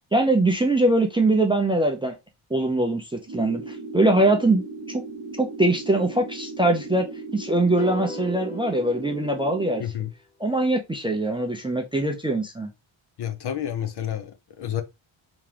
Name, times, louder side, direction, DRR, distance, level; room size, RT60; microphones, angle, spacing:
voice 1, 0.1-2.1 2.5-5.0 5.4-7.1 7.3-9.8 10.4-12.7, right 2 dB, 10° right, 0.4 m, -22 dB
sound 1, 3.3-9.8, right 3 dB, 40° right, 0.9 m, -37 dB
sound 2, 7.8-10.1, left 2 dB, 15° left, 1.1 m, -39 dB
voice 2, 9.8-10.1 13.2-14.8, left 10 dB, 55° left, 0.6 m, -30 dB
3.6 x 3.0 x 3.2 m
wide cardioid pair, 150°, 49 cm